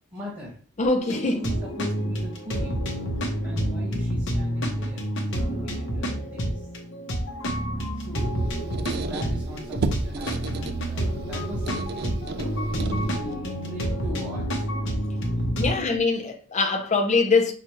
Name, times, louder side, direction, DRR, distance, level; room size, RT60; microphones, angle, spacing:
voice 1, 0.1-0.6 1.3-2.9 3.4-6.7 7.9-8.4 8.8-12.1 12.6-14.6 15.6-15.9, equal, 20° right, 1.5 m, -39 dB
voice 2, 0.8-1.4 15.5-17.5, left 3 dB, 35° left, 0.6 m, -23 dB
sound 1, 1.0-15.8, equal, 60° left, 0.8 m, -28 dB
Squeak, 8.1-13.4, right 3 dB, 50° right, 0.3 m, -33 dB
5.7 x 2.4 x 3.0 m
head